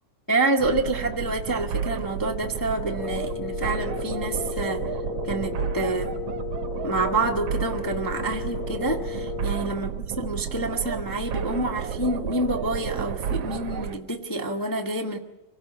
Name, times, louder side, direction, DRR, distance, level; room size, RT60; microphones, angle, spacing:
voice 1, 0.3-4.8 5.2-6.1 6.8-9.9 10.2-15.2, right 2 dB, 20° left, 1 dB, 0.5 m, -27 dB
sound 1, 0.6-14.0, right 8 dB, 60° right, 1.8 m, -32 dB
Wind instrument woodwind instrument, 3.0-9.7, left 9 dB, 65° left, 1.6 m, -35 dB
26.5 x 16.5 x 8.4 m, 1.0 s
omnidirectional pair, 3.6 m